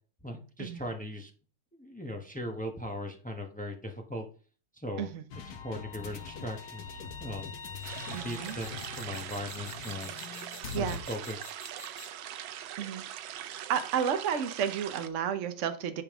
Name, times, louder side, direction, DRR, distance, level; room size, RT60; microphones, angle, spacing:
voice 1, 0.2-1.3 1.7-4.3 4.7-7.5 7.9-10.1 10.7-11.5, left 1 dB, 10° left, 0.4 m, -39 dB
sound 1, 5.3-11.0, left 6 dB, 75° left, 1.8 m, -42 dB
sound 2, 7.6-12.3, left 3 dB, 50° left, 2.7 m, -49 dB
sound 3, 7.8-15.1, right 11 dB, 80° right, 1.4 m, -42 dB
voice 2, 8.1-8.5 10.7-11.0 12.8-13.0 13.4-16.0, right 8 dB, 55° right, 0.9 m, -32 dB
9.6 x 5.2 x 3.6 m
omnidirectional pair, 2.2 m